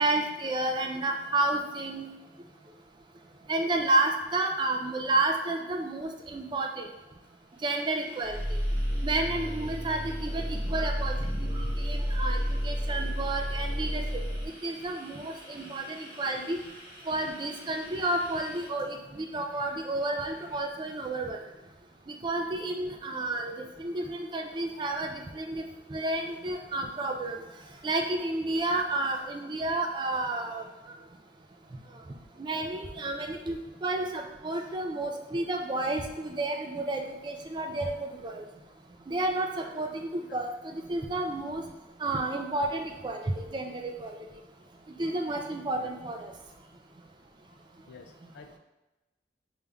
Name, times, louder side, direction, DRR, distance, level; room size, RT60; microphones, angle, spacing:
voice 1, 0.0-2.1 3.5-6.9 7.6-8.4 9.0-12.4 12.6-14.0 14.6-16.6 17.1-21.4 22.1-23.5 23.8-25.6 25.9-27.4 27.8-30.6 32.4-38.4 39.1-41.6 42.0-44.1 45.0-46.3, right 2 dB, 25° right, 3 dB, 0.3 m, -31 dB
sound 1, 7.2-20.7, equal, 55° right, 1.5 m, -51 dB
sound 2, 8.2-14.5, equal, 10° left, 0.9 m, -31 dB
voice 2, 47.9-48.6, left 5 dB, 60° left, 6 dB, 0.3 m, -49 dB
5.1 x 3.4 x 2.3 m, 1.1 s
head